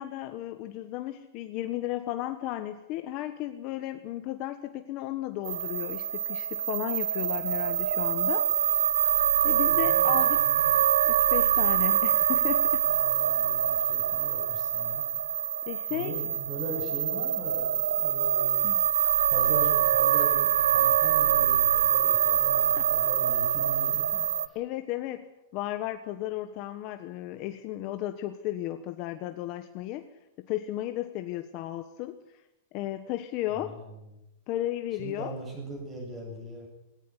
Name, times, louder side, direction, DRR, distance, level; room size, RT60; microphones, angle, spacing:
voice 1, 0.0-8.5 9.4-10.4 11.1-12.8 15.7-16.1 18.6-18.8 22.8-22.9 24.5-30.1 30.5-32.2 32.7-33.8 34.5-35.3, left 14 dB, 30° left, 8 dB, 1.3 m, -34 dB
sound 1, 5.4-24.5, right 10 dB, 75° right, 1.4 m, -25 dB
voice 2, 9.7-10.7 12.9-15.0 15.9-18.7 19.3-24.6 33.6-33.9 35.0-36.7, right 2 dB, 15° right, 3 dB, 7.3 m, -40 dB
20.0 x 18.0 x 10.0 m, 0.91 s
supercardioid pair, 175°, 0 cm